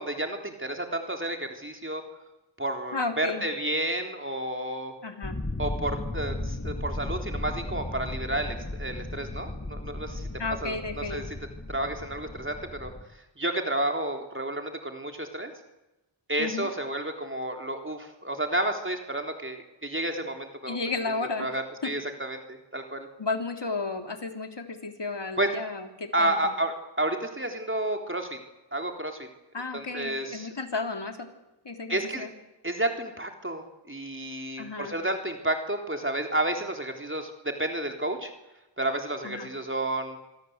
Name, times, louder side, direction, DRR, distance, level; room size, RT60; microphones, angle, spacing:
voice 1, 0.0-2.0 2.6-4.9 5.6-10.3 10.6-11.2 11.7-15.5 16.3-20.8 21.2-23.1 25.4-25.5 26.1-28.4 28.7-29.3 29.7-30.5 31.9-32.3 32.6-38.3 38.8-40.2, right 1 dB, 25° right, 4 dB, 3.7 m, -31 dB
voice 2, 2.9-3.4 5.0-5.4 10.4-11.2 16.4-16.7 20.7-21.5 23.2-26.5 29.5-31.3 31.7-32.3 34.6-34.9 39.2-39.5, left 3 dB, 65° left, 5 dB, 3.5 m, -33 dB
sound 1, 5.2-13.0, left 1 dB, 25° left, 3.8 m, -35 dB
27.0 x 23.0 x 8.2 m, 0.99 s
wide cardioid pair, 55°, 45 cm